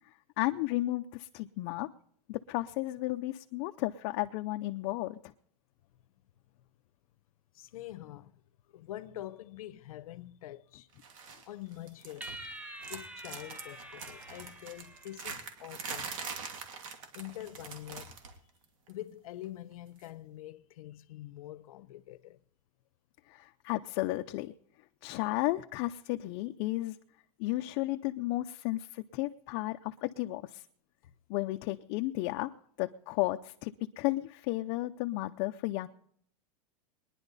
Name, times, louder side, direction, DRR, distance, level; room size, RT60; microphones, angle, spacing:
voice 1, 0.4-1.9 2.3-5.3 23.3-24.5 25.0-27.0 27.4-30.6 31.3-32.5 32.8-35.9, left 18 dB, 40° left, 0.6 m, -33 dB
voice 2, 7.5-8.3 8.7-10.9 11.5-12.4 12.9-16.1 17.1-18.2 18.9-22.4 31.0-31.1, left 14 dB, 80° left, 0.9 m, -45 dB
sound 1, 11.0-11.5 11.7-12.5 12.8-18.4 18.6-18.9 20.0-20.1, right 5 dB, 70° right, 2.7 m, -43 dB
sound 2, 12.2-15.8, right 1 dB, 10° right, 0.8 m, -47 dB
22.0 x 10.5 x 4.1 m
supercardioid pair, 165°, 18 cm